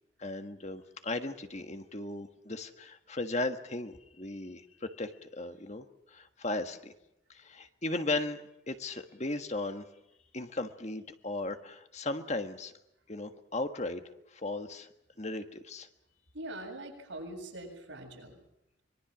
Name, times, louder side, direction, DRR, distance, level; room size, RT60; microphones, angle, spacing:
voice 1, 0.2-5.9 6.1-6.9 7.3-9.8 10.3-12.7 13.1-14.0 14.3-14.9 15.2-15.9, left 2 dB, 35° left, 8 dB, 1.5 m, -36 dB
voice 2, 16.3-18.4, right 1 dB, 85° right, 2 dB, 7.5 m, -43 dB
25.0 x 23.0 x 6.2 m, 0.84 s
head